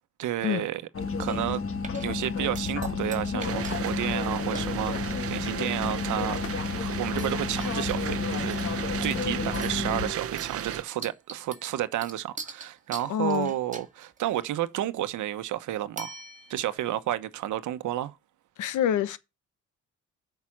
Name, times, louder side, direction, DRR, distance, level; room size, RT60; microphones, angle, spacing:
voice 1, 0.2-0.8 1.2-1.6 2.0-6.4 6.7-16.1 16.5-18.1, right 13 dB, 80° right, 1.1 m, -31 dB
sound 1, 0.9-10.1, left 5 dB, 45° left, 1.6 m, -31 dB
sound 2, 1.3-1.6 1.8-2.3 2.5-3.8 4.1-4.2 4.5-4.7 5.4-6.0 6.4-6.7 7.2-8.1 8.5-9.2 9.5-9.9 10.4-14.4 16.0-16.8, right 4 dB, 25° right, 1.9 m, -43 dB
sound 3, 3.4-10.8, right 9 dB, 50° right, 0.8 m, -36 dB
voice 2, 13.1-13.5 18.6-19.2, left 10 dB, 80° left, 1.1 m, -26 dB
8.4 x 5.9 x 6.1 m
cardioid pair, 90°, 30 cm